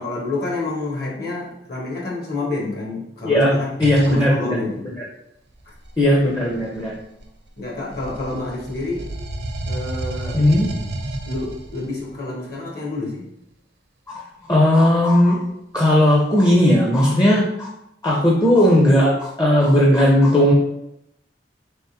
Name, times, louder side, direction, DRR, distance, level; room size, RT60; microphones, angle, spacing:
voice 1, 0.0-3.7 4.0-4.9 7.6-9.0 9.7-10.4 11.2-13.3, left 2 dB, 60° left, -3 dB, 1.2 m, -28 dB
voice 2, 3.8-4.6 6.0-6.9 10.3-10.7 14.1-14.2 14.5-15.4 15.7-17.7 18.0-20.5, left 1 dB, 20° left, -3 dB, 0.5 m, -16 dB
sound 1, 3.8-4.3 5.6-7.5 7.9-12.0, right 1 dB, 65° right, 0.6 m, -31 dB
3.6 x 3.5 x 2.8 m, 0.82 s
head